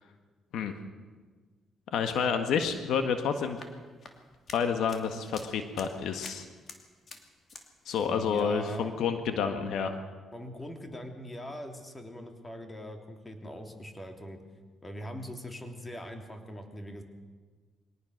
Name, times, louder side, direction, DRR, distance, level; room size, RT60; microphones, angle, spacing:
voice 1, 1.9-3.6 4.5-6.5 7.9-10.0, left 6 dB, 80° left, 7 dB, 1.6 m, -29 dB
sound 1, 3.4-7.7 7.9-8.4, left 4 dB, 45° left, 2.7 m, -49 dB
voice 2, 8.0-8.9 10.3-14.4 14.8-17.0, equal, 20° left, 4 dB, 3.2 m, -42 dB
22.5 x 18.5 x 6.6 m, 1.4 s
cardioid pair, 90°, 0 cm